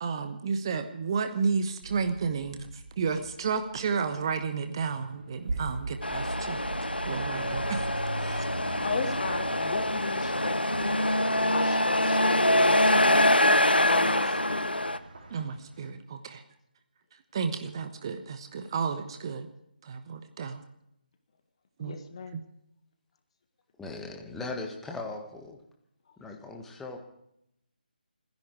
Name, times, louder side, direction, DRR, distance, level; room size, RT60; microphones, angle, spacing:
voice 1, 0.0-6.6 7.0-7.9 8.2-8.8 15.3-16.4 17.3-19.5 19.8-20.6 21.8-22.0 22.3-22.4, right 5 dB, 30° right, 8 dB, 1.1 m, -32 dB
sound 1, 1.8-15.4, right 3 dB, 45° right, 3.6 m, -43 dB
sound 2, 4.9-15.9, right 1 dB, 65° right, 4.2 m, -42 dB
Truck, 6.0-15.0, left 1 dB, 80° left, 1.0 m, -25 dB
voice 2, 8.8-11.0 11.4-14.8 21.8-22.4, left 5 dB, 35° left, 8 dB, 1.7 m, -36 dB
voice 3, 23.8-25.6 26.2-27.0, left 3 dB, 5° left, 2 dB, 1.6 m, -38 dB
28.5 x 10.5 x 4.7 m, 0.79 s
figure-of-eight pair, 150°, 5 cm